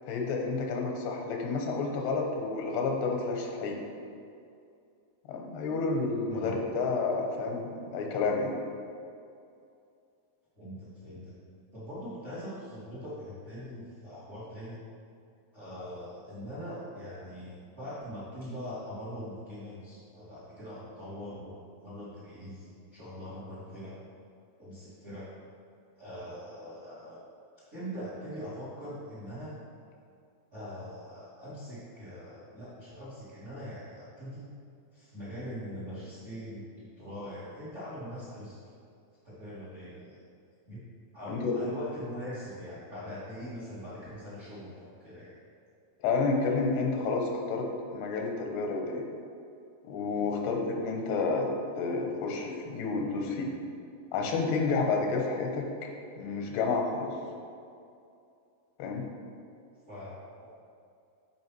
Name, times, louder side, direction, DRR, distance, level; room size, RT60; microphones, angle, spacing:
voice 1, 0.1-3.8 5.3-8.5 41.3-41.6 46.0-49.0 49.8-51.5 51.8-53.5 54.1-55.7 56.2-57.1 58.8-59.0, left 4 dB, 85° left, 2 dB, 3.0 m, -30 dB
voice 2, 10.6-11.3 11.7-14.8 15.5-23.9 24.6-25.2 26.0-27.2 27.7-29.5 30.5-34.5 34.9-38.8 39.2-40.2 40.6-40.8 41.1-45.4 50.3-50.6 59.9-60.5, equal, 30° right, -10 dB, 1.3 m, -42 dB
8.5 x 5.3 x 4.6 m, 2.4 s
omnidirectional pair, 4.6 m